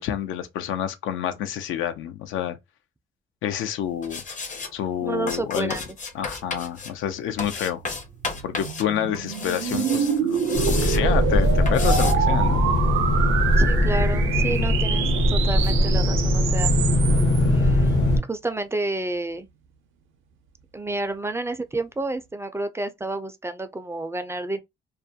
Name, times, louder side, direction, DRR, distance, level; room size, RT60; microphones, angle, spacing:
voice 1, 0.0-2.6 3.4-4.2 4.7-5.8 6.1-7.8 8.4-12.6, left 10 dB, 80° left, 0.5 m, -28 dB
sound 1, 4.0-4.7 5.3-6.9 7.4-8.8 9.1-11.0 11.7-12.1, left 4 dB, 40° left, 0.6 m, -32 dB
voice 2, 5.0-6.0 13.6-16.7 17.4-19.5 20.7-24.6, right 2 dB, 15° right, 0.3 m, -30 dB
sound 2, 7.7-17.4, right 8 dB, 80° right, 0.5 m, -27 dB
sound 3, 10.5-18.2, left 1 dB, 65° left, 0.9 m, -20 dB
2.3 x 2.1 x 2.6 m
cardioid pair, 90°, 20 cm